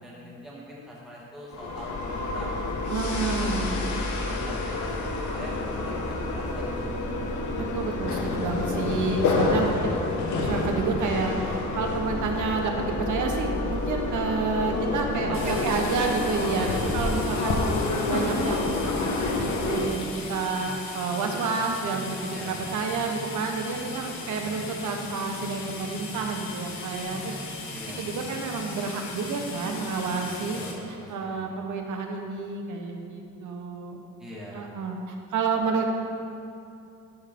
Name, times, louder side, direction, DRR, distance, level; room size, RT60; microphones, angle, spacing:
voice 1, 0.0-2.6 2.9-3.7 4.3-7.3 9.8-10.0 15.3-17.0 17.3-17.6 22.3-22.6 24.4-24.6 27.7-28.0 30.5-31.4 34.2-34.6, equal, ahead, -6 dB, 1.2 m, -42 dB
sound 1, 1.5-19.9, left 3 dB, 90° left, 1.1 m, -28 dB
voice 2, 2.9-3.8 7.6-10.0 10.4-18.8 19.4-27.4 27.6-30.6 30.9-34.0 34.5-35.9, right 4 dB, 90° right, 2 dB, 1.1 m, -30 dB
sound 2, 15.3-30.7, left 3 dB, 70° left, 1.2 m, -38 dB
12.5 x 6.0 x 3.6 m, 2.6 s
wide cardioid pair, 175°, 29 cm